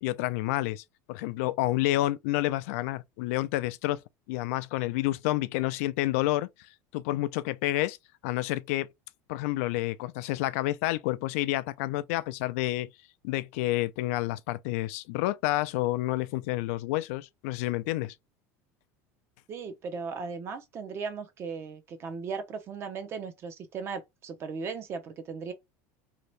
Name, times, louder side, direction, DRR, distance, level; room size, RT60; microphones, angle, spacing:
voice 1, 0.0-4.0 4.3-8.0 8.2-8.9 9.3-12.9 13.2-18.1, left 17 dB, 75° left, 0.4 m, -29 dB
voice 2, 19.5-25.5, right 5 dB, 35° right, 0.7 m, -37 dB
2.8 x 2.5 x 3.2 m
supercardioid pair, 140°, 8 cm